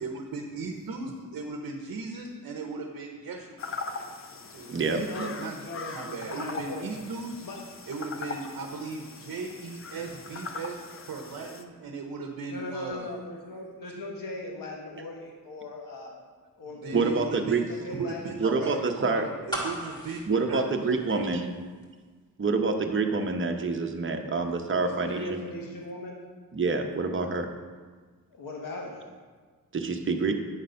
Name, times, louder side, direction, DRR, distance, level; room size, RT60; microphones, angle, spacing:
voice 1, 0.0-3.6 4.5-7.5 7.9-13.1 16.6-18.8 19.0-19.1 19.5-20.7 21.1-21.4, right 4 dB, 65° right, 2 dB, 0.9 m, -37 dB
sound 1, 3.6-11.6, left 4 dB, 40° left, 0.6 m, -40 dB
voice 2, 5.0-6.8 7.4-7.6 12.5-16.2 16.6-17.0 17.6-19.5 24.8-26.2 28.3-29.0, left 2 dB, 65° left, -1 dB, 1.4 m, -39 dB
voice 3, 16.9-17.6 18.4-19.3 20.3-21.5 22.4-25.4 26.5-27.5 29.7-30.4, right 4 dB, 35° right, 4 dB, 0.9 m, -27 dB
sound 2, 19.5-21.5 21.8-21.9, right 1 dB, 10° left, 2.0 m, -36 dB
8.9 x 3.9 x 5.5 m, 1.5 s
cardioid pair, 80°, 36 cm